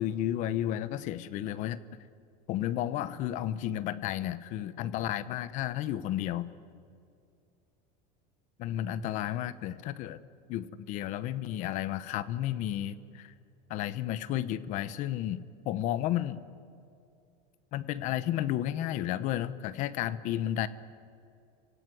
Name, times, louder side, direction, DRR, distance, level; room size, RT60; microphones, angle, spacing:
voice 1, 0.0-1.8 2.5-6.5 8.6-10.2 10.5-13.3 13.7-15.4 15.6-16.4 17.7-20.7, left 12 dB, 35° left, 15 dB, 0.9 m, -32 dB
29.0 x 17.0 x 9.8 m, 2.5 s
cardioid pair, 175°, 21 cm